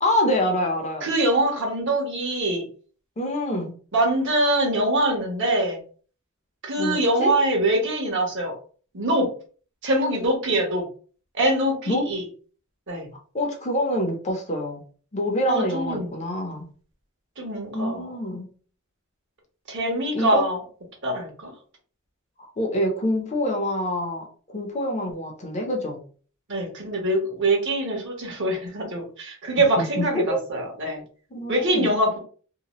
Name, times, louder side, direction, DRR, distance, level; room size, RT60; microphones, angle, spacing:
voice 1, 0.0-1.1 3.2-3.7 6.8-7.3 11.9-12.1 13.3-14.8 15.1-16.6 17.7-18.5 20.1-20.4 22.4-26.0 29.6-30.4 31.3-31.9, left 1 dB, 35° left, 3 dB, 0.7 m, -26 dB
voice 2, 1.0-2.7 3.9-5.8 6.6-8.5 8.9-9.3 9.8-10.8 11.3-12.2 12.9-13.1 15.5-16.2 17.4-18.1 19.7-20.6 21.0-21.5 26.5-31.0 31.5-32.2, right 1 dB, 60° right, 1 dB, 1.1 m, -23 dB
2.8 x 2.2 x 3.0 m, 0.41 s
head